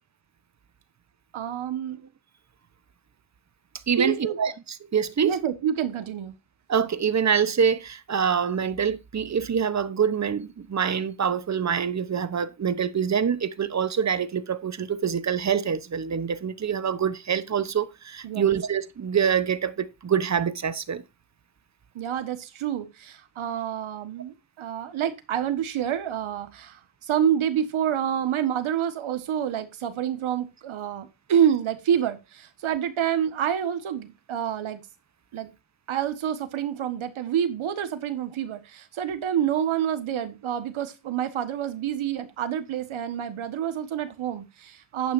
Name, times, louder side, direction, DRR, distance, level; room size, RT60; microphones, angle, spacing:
voice 1, 1.3-2.0 4.0-4.4 5.2-6.3 18.2-18.5 21.9-34.8 35.3-35.5 35.9-45.1, right 9 dB, 80° right, 1.6 m, -28 dB
voice 2, 3.9-4.5 4.9-5.4 6.7-21.0, right 7 dB, 35° right, 0.9 m, -25 dB
10.5 x 9.1 x 2.6 m
cardioid pair, 115°, 48 cm